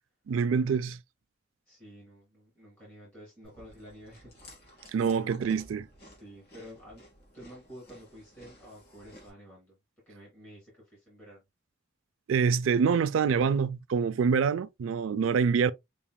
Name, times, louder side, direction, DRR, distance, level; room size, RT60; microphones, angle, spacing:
voice 1, 0.3-1.0 4.9-5.9 12.3-15.7, right 6 dB, 75° right, 0.4 m, -26 dB
voice 2, 1.7-4.3 4.6-5.4 6.0-7.0 7.3-9.8 10.1-11.4, equal, 10° left, 2.3 m, -50 dB
Chewing mastication, 3.4-9.3, equal, 50° left, 2.6 m, -53 dB
5.7 x 3.6 x 2.2 m
head